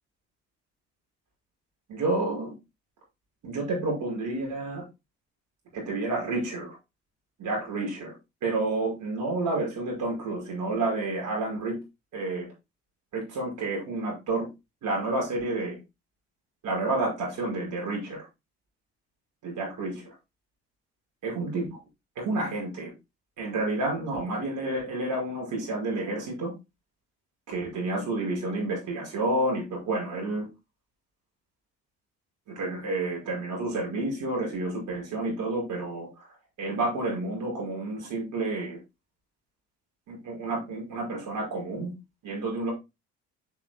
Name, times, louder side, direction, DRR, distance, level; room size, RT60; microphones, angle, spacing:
voice 1, 1.9-2.5 3.4-4.8 5.7-6.8 7.4-8.1 8.4-11.8 12.1-12.5 13.1-14.5 14.8-15.8 16.6-18.3 19.4-20.1 21.2-21.6 22.2-22.9 23.4-26.5 27.5-30.5 32.5-36.1 36.6-38.8 40.1-41.9 42.2-42.7, right 2 dB, 65° right, -1 dB, 5.9 m, -30 dB
11.5 x 6.4 x 2.2 m, 0.24 s
hypercardioid pair, 55°, 33 cm